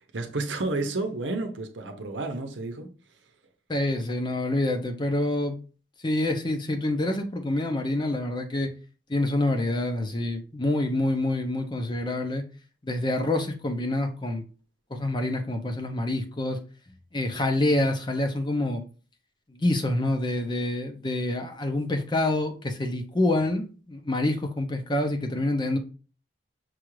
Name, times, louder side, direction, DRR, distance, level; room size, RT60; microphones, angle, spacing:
voice 1, 0.1-2.9, right 2 dB, 80° right, 0.7 m, -31 dB
voice 2, 3.7-5.6 6.0-8.7 9.1-12.4 12.8-14.4 14.9-16.6 17.1-18.8 19.5-25.8, left 1 dB, 25° left, 0.6 m, -27 dB
6.1 x 2.4 x 3.1 m
head